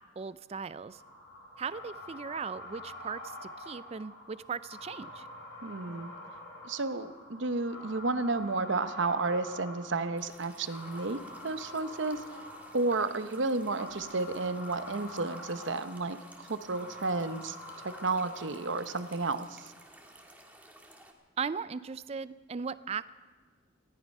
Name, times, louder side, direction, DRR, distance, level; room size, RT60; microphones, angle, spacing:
voice 1, 0.2-1.0 1.6-5.3 21.4-23.1, right 6 dB, 30° right, 16 dB, 0.4 m, -38 dB
sound 1, 0.8-19.7, left 1 dB, 65° left, 4.0 m, -47 dB
voice 2, 5.6-6.1 6.6-12.2 12.7-17.6 17.8-19.7, right 3 dB, 65° right, 11 dB, 0.8 m, -32 dB
sound 2, 10.2-21.1, right 1 dB, 10° right, 1.6 m, -55 dB
19.0 x 14.0 x 5.4 m, 1.5 s
head